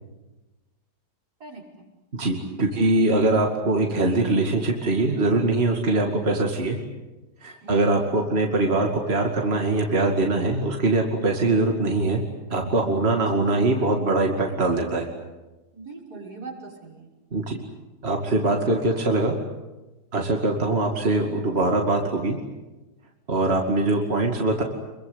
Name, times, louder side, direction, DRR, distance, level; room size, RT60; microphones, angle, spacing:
voice 1, 1.4-1.9 2.7-3.1 7.6-8.0 13.1-13.7 15.7-17.1, right 3 dB, 70° right, -1 dB, 6.7 m, -41 dB
voice 2, 2.1-6.8 7.4-12.2 12.5-15.1 17.3-17.6 18.0-19.3 20.1-22.4 23.3-24.6, right 2 dB, 40° right, 1 dB, 2.7 m, -22 dB
28.5 x 23.0 x 8.3 m, 1.1 s
omnidirectional pair, 1.7 m